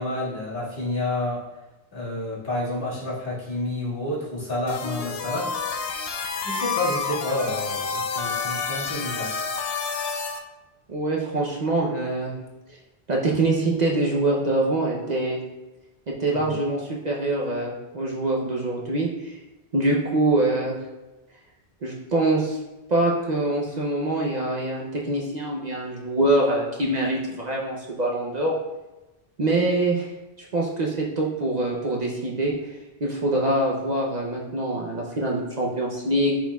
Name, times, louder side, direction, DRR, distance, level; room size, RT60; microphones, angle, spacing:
voice 1, 0.0-1.4 1.9-5.5 6.4-9.3 16.3-16.6, left 1 dB, 60° left, -9 dB, 2.2 m, -29 dB
sound 1, 4.7-10.4, left 5 dB, 75° left, 0.8 m, -29 dB
voice 2, 10.9-12.3 13.1-15.4 16.1-19.4 19.7-20.8 21.8-22.6 22.9-28.5 29.4-30.1 30.4-32.5 33.0-36.4, right 2 dB, 45° right, -3 dB, 0.8 m, -24 dB
10.0 x 4.2 x 2.3 m, 1.0 s
omnidirectional pair, 1.1 m